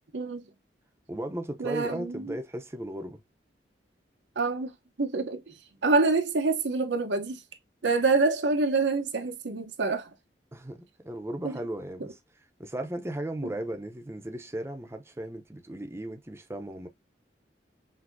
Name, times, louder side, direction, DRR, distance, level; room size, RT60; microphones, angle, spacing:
voice 1, 0.1-0.5 1.6-2.4 4.4-4.7 5.0-5.6 5.8-7.4 7.8-10.1 11.4-11.6 13.4-13.5, right 3 dB, 85° right, 0.9 m, -26 dB
voice 2, 1.1-3.2 10.5-12.2 12.6-16.9, right 1 dB, 15° right, 0.7 m, -36 dB
6.0 x 2.7 x 2.6 m
head